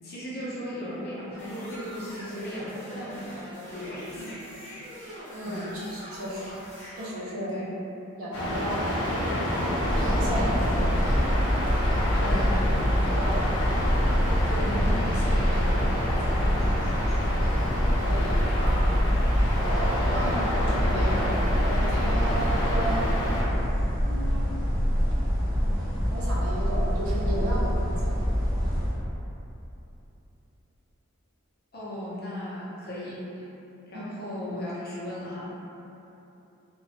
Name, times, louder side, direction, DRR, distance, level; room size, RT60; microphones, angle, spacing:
voice 1, 0.0-3.4 3.7-4.4 5.4-5.7 7.5-7.7 10.2-10.5 11.9-12.6 14.4-16.6 31.7-33.4 33.9-35.5, equal, 45° left, -8 dB, 0.5 m, -36 dB
sound 1, 1.3-7.1, equal, 15° left, 0.9 m, -43 dB
voice 2, 5.3-6.4 6.9-7.5 8.2-9.3 9.9-10.5 11.9-12.3 13.0-13.4 18.1-18.9 19.6-21.1 21.5-23.1 24.0-24.6 26.1-28.1 33.9-34.1, right 1 dB, 85° right, -6 dB, 0.6 m, -34 dB
sound 2, 8.3-23.4, left 1 dB, 80° left, 0.7 m, -29 dB
sound 3, 9.8-29.0, equal, 40° right, 1.3 m, -25 dB
2.9 x 2.2 x 2.8 m, 2.9 s
head